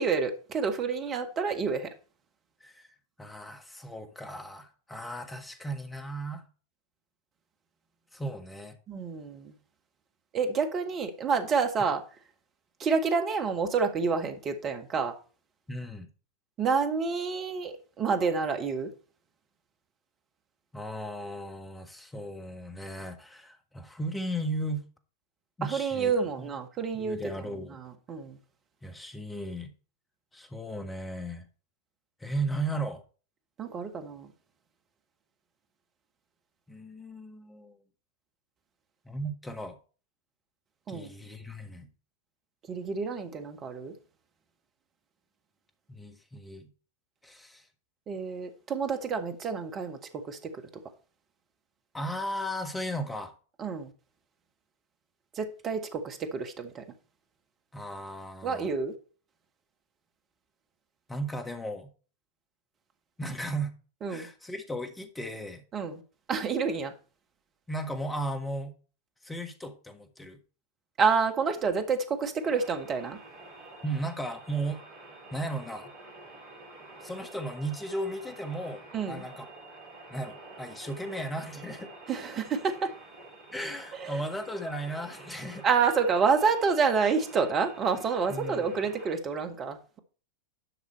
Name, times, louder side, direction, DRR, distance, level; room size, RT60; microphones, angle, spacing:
voice 1, 0.0-1.9 8.9-9.5 10.3-12.0 12.8-15.1 16.6-18.9 25.6-27.2 27.7-28.4 33.6-34.3 40.9-41.1 42.7-43.9 48.1-50.5 53.6-53.9 55.3-56.8 58.4-58.9 64.0-64.3 65.7-66.0 66.3-66.9 71.0-73.2 78.9-79.2 82.1-82.9 84.0-84.2 85.6-90.0, right 5 dB, 25° right, 1.5 m, -28 dB
voice 2, 3.2-6.4 8.1-8.8 15.7-16.1 20.7-24.9 25.6-26.1 26.4-26.5 26.9-27.8 28.8-29.7 30.3-31.5 32.2-33.0 36.7-37.8 39.0-39.8 40.9-41.9 45.9-46.7 47.2-47.7 51.9-53.3 57.7-58.7 61.1-61.9 63.2-63.7 64.1-65.6 67.7-68.7 69.2-70.4 73.8-74.8 75.3-75.9 77.0-79.5 80.1-81.9 83.5-85.6 88.3-88.7, right 1 dB, 10° left, 1.5 m, -36 dB
sound 1, 72.4-89.1, right 2 dB, 50° right, 3.6 m, -48 dB
11.5 x 6.0 x 4.3 m
figure-of-eight pair, 90°, 0 cm